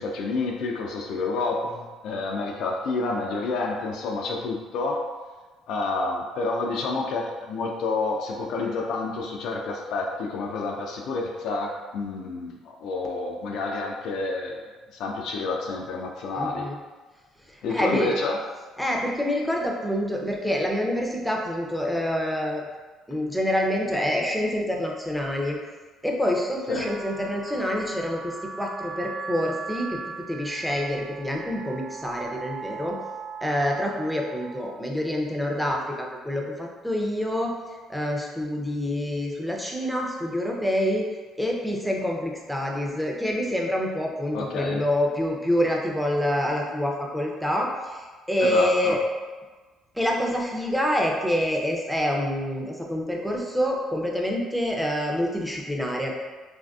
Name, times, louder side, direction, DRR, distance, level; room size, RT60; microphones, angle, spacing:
voice 1, 0.0-5.1 5.7-16.7 17.6-18.4 26.7-26.9 44.3-44.8 48.4-49.0, left 3 dB, 75° left, 0 dB, 0.3 m, -29 dB
voice 2, 16.4-16.8 17.5-18.2 18.8-22.6 23.1-25.6 26.0-33.0 33.4-37.5 37.9-41.1 41.4-49.0 50.0-56.1, equal, ahead, -1 dB, 0.5 m, -27 dB
sound 1, 26.7-34.6, right 4 dB, 85° right, 0.5 m, -38 dB
3.2 x 2.5 x 2.3 m, 1.3 s
supercardioid pair, 75°, 0 cm